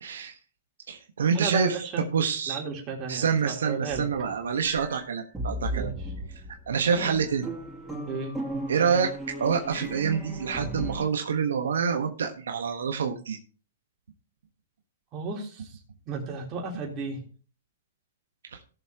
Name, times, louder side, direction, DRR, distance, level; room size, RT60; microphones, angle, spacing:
voice 1, 0.0-0.3 0.9-2.6 3.1-5.9 6.7-7.5 8.7-9.1 9.4-13.4 18.5-18.6, right 6 dB, 85° right, 5 dB, 1.3 m, -27 dB
voice 2, 1.3-2.1 2.5-4.0 5.7-5.9 8.1-8.4 15.1-15.8 16.1-17.2, right 5 dB, 30° right, 0 dB, 3.5 m, -34 dB
sound 1, 3.9-11.0, right 1 dB, 10° right, 4.9 m, -36 dB
18.5 x 7.0 x 3.0 m, 0.37 s
hypercardioid pair, 135°, 0 cm